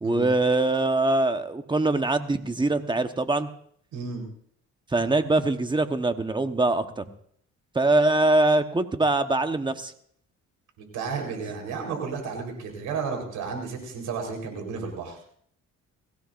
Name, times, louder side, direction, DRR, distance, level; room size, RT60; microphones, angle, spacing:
voice 1, 0.0-3.5 4.9-7.0 7.7-9.9, right 2 dB, 15° right, 8 dB, 1.1 m, -23 dB
voice 2, 3.9-4.2 10.8-15.2, right 5 dB, 90° right, 3 dB, 4.2 m, -32 dB
22.0 x 16.5 x 2.6 m, 0.63 s
cardioid pair, 90°, 30 cm